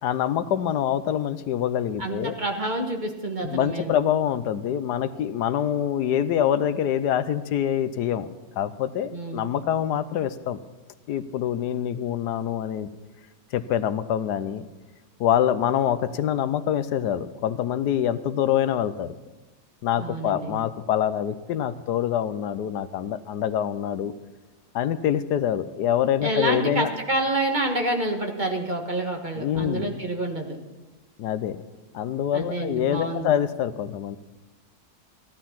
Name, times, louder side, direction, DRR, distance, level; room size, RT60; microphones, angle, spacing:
voice 1, 0.0-2.3 3.4-8.3 8.6-10.6 11.1-12.9 13.5-14.7 15.2-19.2 19.8-24.1 24.7-26.9 29.4-30.0 31.2-31.6 31.9-34.2, left 10 dB, 80° left, 13 dB, 1.2 m, -25 dB
voice 2, 2.0-3.9 9.1-9.4 20.0-20.5 26.2-30.6 32.3-33.3, right 1 dB, 30° right, 2 dB, 1.5 m, -28 dB
15.0 x 12.0 x 5.7 m, 1.1 s
omnidirectional pair, 1.8 m